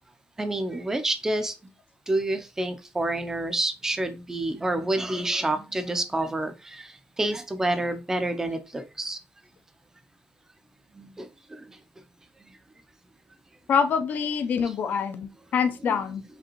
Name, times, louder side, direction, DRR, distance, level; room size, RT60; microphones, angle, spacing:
voice 1, 0.4-1.5 2.1-9.2 10.9-11.8 12.4-12.6 14.5-14.7 15.9-16.0, right 2 dB, 15° right, 0.6 m, -29 dB
voice 2, 13.7-16.2, left 6 dB, 55° left, 0.6 m, -25 dB
5.0 x 3.4 x 3.0 m
cardioid pair, 155°, 4 cm